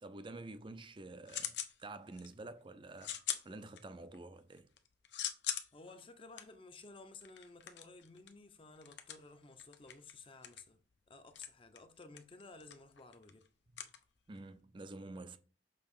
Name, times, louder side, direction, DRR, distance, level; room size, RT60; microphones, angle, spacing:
voice 1, 0.0-3.2 3.4-4.7 14.3-15.4, right 2 dB, 25° right, 0.5 m, -49 dB
sound 1, 0.6-1.8 2.1-2.5 3.0-4.2 4.5-14.6, left 11 dB, 75° left, 0.8 m, -44 dB
voice 2, 5.7-10.8 11.1-13.4, left 3 dB, 30° left, 0.6 m, -55 dB
6.7 x 3.0 x 5.4 m
head